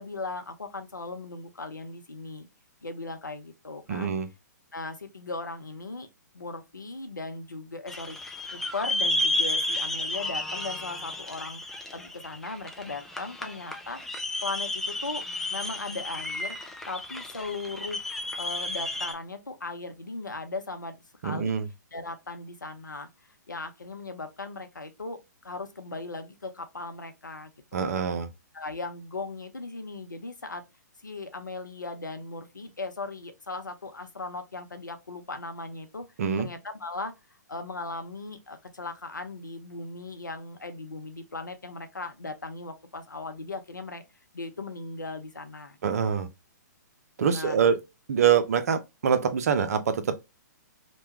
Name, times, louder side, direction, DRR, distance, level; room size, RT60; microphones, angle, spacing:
voice 1, 0.0-2.5 2.8-4.2 4.7-6.1 6.3-8.2 8.5-14.0 14.4-15.2 15.5-18.0 18.4-21.0 21.2-21.5 21.9-23.1 23.5-27.9 28.5-30.6 31.0-36.0 36.4-37.1 37.5-44.0 44.3-45.8 46.0-46.2 47.3-47.6, left 3 dB, 85° left, 0.7 m, -38 dB
voice 2, 3.9-4.3 21.2-21.7 27.7-28.3 36.2-36.5 45.8-46.3 47.2-47.8 48.1-50.2, right 7 dB, 55° right, 0.5 m, -25 dB
sound 1, 7.9-19.1, left 2 dB, 5° left, 0.3 m, -32 dB
3.0 x 2.2 x 2.8 m
figure-of-eight pair, 125°, 10 cm